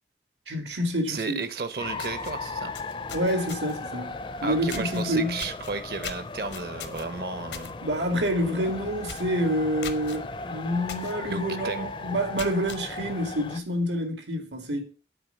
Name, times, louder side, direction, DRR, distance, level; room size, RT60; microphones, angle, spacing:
voice 1, 0.5-1.4 3.1-5.4 7.8-14.8, equal, 90° right, 2.1 m, -28 dB
voice 2, 1.1-2.7 4.4-7.8 11.3-11.9, right 4 dB, 60° right, 0.8 m, -33 dB
sound 1, 1.5-1.6 1.9-3.9 4.7-5.0 5.4-7.7 8.1-8.3 8.6-8.7 9.0-9.3 9.8-10.2 10.9-11.1 11.6-11.7 12.2-12.8, left 7 dB, 85° left, 1.1 m, -39 dB
sound 2, 1.8-13.6, left 3 dB, 30° left, 0.4 m, -37 dB
9.5 x 4.4 x 6.9 m
head